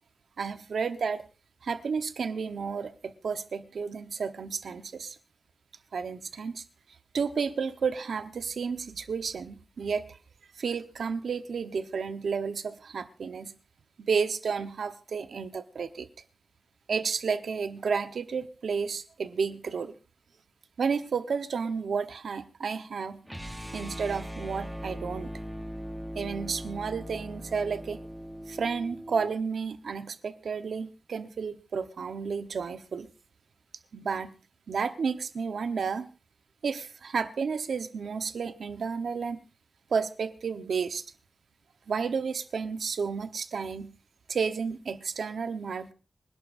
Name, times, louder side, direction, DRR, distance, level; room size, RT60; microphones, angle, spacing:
voice 1, 0.4-1.2 1.6-5.2 5.9-6.6 7.1-10.0 10.6-13.5 14.0-16.1 16.9-19.9 20.8-23.2 23.7-25.3 26.1-28.0 28.5-33.1 33.9-34.3 34.7-36.1 36.6-39.4 39.9-41.0 41.9-43.9 44.3-45.9, right 5 dB, 90° right, 1.1 m, -31 dB
sound 1, 23.3-29.3, equal, 5° right, 1.1 m, -40 dB
25.0 x 11.0 x 2.7 m
wide cardioid pair, 155°, 0 cm